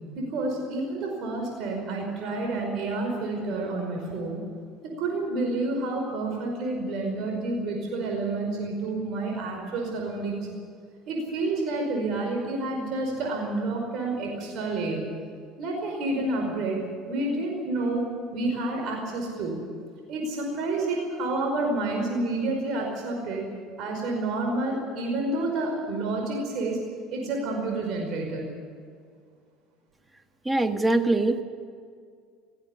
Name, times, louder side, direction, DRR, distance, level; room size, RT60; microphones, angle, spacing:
voice 1, 0.1-4.5 4.8-10.4 11.1-15.1 15.6-16.8 17.1-18.0 18.3-19.6 20.1-23.5 23.8-26.8 27.1-28.5, right 2 dB, 60° right, 1 dB, 5.2 m, -29 dB
voice 2, 30.4-31.4, right 2 dB, 10° right, 7 dB, 1.6 m, -23 dB
17.5 x 16.0 x 9.9 m, 2.1 s
supercardioid pair, 105°, 0 cm